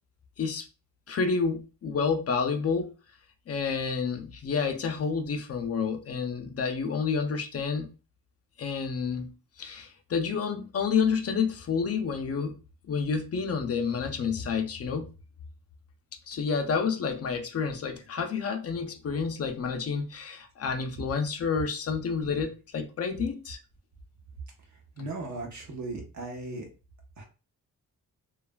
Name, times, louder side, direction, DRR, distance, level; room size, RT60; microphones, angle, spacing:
voice 1, 1.1-2.9 3.5-7.9 8.6-9.3 9.6-12.6 12.9-15.1 16.3-23.6, left 5 dB, 40° left, 0.6 m, -29 dB
voice 2, 25.0-26.7 27.2-27.3, right 2 dB, 50° right, 1.0 m, -37 dB
3.1 x 2.3 x 2.2 m
cardioid pair, 100°, 37 cm